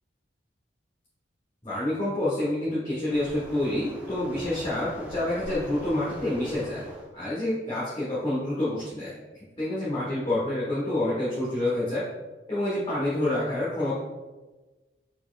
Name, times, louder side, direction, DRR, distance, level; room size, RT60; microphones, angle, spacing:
voice 1, 1.6-6.8 7.1-12.0 12.5-13.9, left 1 dB, 25° left, -10 dB, 1.2 m, -28 dB
Waves surf, 3.1-7.1, equal, 10° right, 0.5 m, -41 dB
4.5 x 4.2 x 2.4 m, 1.2 s
head